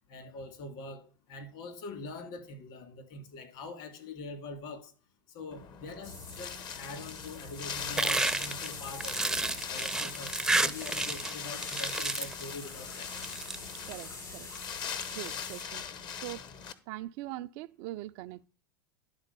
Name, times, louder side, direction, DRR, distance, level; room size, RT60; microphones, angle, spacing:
voice 1, 0.1-4.9 5.3-9.4 9.7-13.3, left 2 dB, 60° left, 2.6 m, -44 dB
Wind, 5.5-16.7, left 7 dB, 40° left, 0.9 m, -42 dB
sound 1, 6.0-15.6, left 3 dB, 85° left, 3.3 m, -44 dB
sound 2, 8.0-11.4 11.6-12.4 13.1-13.6, right 2 dB, 5° right, 0.5 m, -30 dB
voice 2, 13.9-14.5 14.8-15.8 16.2-16.4 16.9-18.4, right 16 dB, 55° right, 0.4 m, -42 dB
11.5 x 4.1 x 6.7 m
hypercardioid pair, 90°, 11 cm